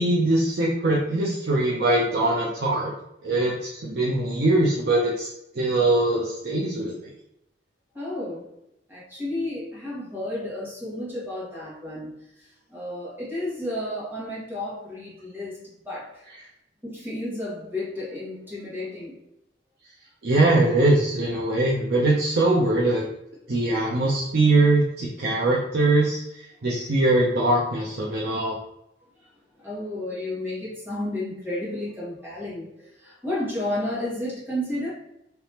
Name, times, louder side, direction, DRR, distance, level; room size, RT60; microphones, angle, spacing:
voice 1, 0.0-2.9 3.2-3.6 3.8-5.3 5.5-7.0 20.2-23.0 23.5-28.6, right 2 dB, 60° right, -4 dB, 0.6 m, -22 dB
voice 2, 7.9-8.4 8.9-16.2 16.8-19.2 23.4-23.5 29.2-29.3 29.6-34.9, left 1 dB, 10° right, -7 dB, 1.4 m, -32 dB
3.4 x 2.9 x 2.8 m, 0.82 s
head